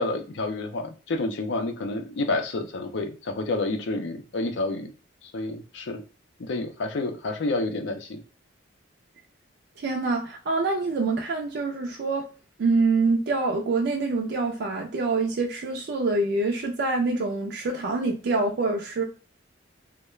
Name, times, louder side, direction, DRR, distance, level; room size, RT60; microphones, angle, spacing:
voice 1, 0.0-4.9 5.2-6.0 6.4-8.2, left 2 dB, 65° left, 0.4 m, -29 dB
voice 2, 9.8-12.3 12.6-19.0, right 3 dB, 55° right, 0.3 m, -25 dB
2.3 x 2.1 x 3.0 m
head